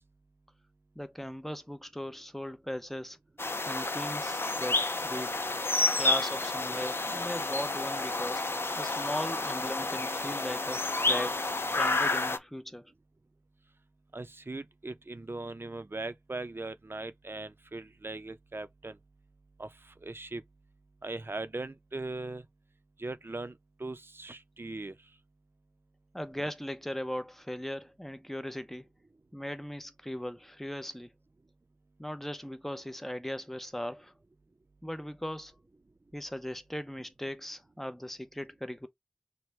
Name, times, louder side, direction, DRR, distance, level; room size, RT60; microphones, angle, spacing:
voice 1, 1.0-3.2 3.7-5.4 5.9-8.4 8.8-11.4 11.7-12.9 26.1-28.9 29.3-31.1 32.0-34.1 34.8-35.6 36.1-38.9, equal, 5° left, 0.6 m, -38 dB
sound 1, 3.4-12.4, left 2 dB, 75° left, 0.5 m, -30 dB
voice 2, 14.1-19.0 19.6-20.4 21.0-22.4 23.0-24.9, right 2 dB, 70° right, 0.6 m, -39 dB
5.9 x 2.2 x 3.2 m
wide cardioid pair, 40°, 4 cm